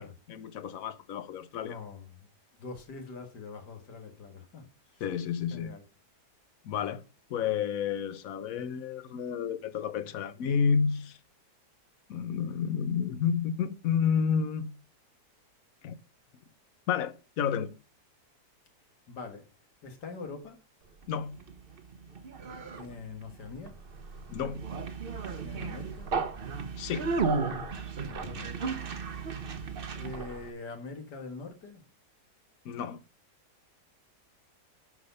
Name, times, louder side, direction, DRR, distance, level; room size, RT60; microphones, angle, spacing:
voice 1, 0.3-1.8 5.0-5.7 6.6-7.0 7.3-11.2 12.1-14.7 15.8-16.0 16.9-17.7 21.1-21.4 24.3-24.6 26.8-27.1 32.6-33.0, left 7 dB, 65° left, 1.2 m, -30 dB
voice 2, 1.6-2.3 2.6-5.0 5.5-5.8 19.1-19.5 19.8-20.6 22.7-23.8 25.4-26.1 28.0-29.0 29.6-31.8, left 4 dB, 90° left, 2.3 m, -44 dB
Conversation, 21.0-30.5, right 4 dB, 40° right, 1.0 m, -35 dB
11.0 x 5.0 x 5.5 m
omnidirectional pair, 1.7 m